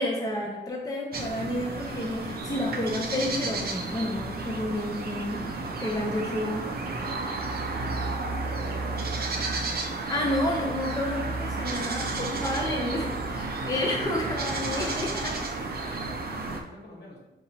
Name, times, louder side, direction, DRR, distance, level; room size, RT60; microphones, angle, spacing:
voice 1, 0.0-5.4 5.8-6.6 10.1-15.3 15.8-16.0, left 1 dB, 20° left, -1 dB, 0.6 m, -30 dB
sound 1, 1.1-16.6, right 3 dB, 60° right, 0.5 m, -32 dB
voice 2, 5.9-7.1 7.4-10.6 14.4-17.2, left 1 dB, 70° left, -4 dB, 1.4 m, -47 dB
4.7 x 2.9 x 2.9 m, 0.96 s
wide cardioid pair, 90°, 18 cm